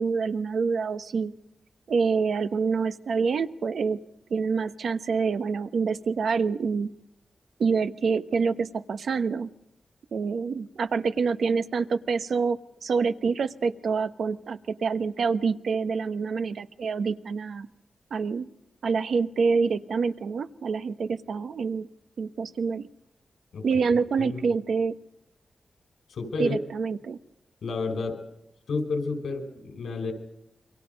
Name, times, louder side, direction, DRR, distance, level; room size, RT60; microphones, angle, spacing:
voice 1, 0.0-1.3 1.9-4.0 4.3-6.9 7.6-9.5 10.1-17.7 18.1-18.4 18.8-21.9 22.2-22.9 23.6-24.9 26.4-27.2, right 5 dB, 80° right, 10 dB, 1.1 m, -26 dB
voice 2, 26.1-26.6 27.6-28.2 28.7-30.1, left 4 dB, 90° left, 6 dB, 4.9 m, -30 dB
27.5 x 24.0 x 5.3 m, 0.85 s
cardioid pair, 70°, 0 cm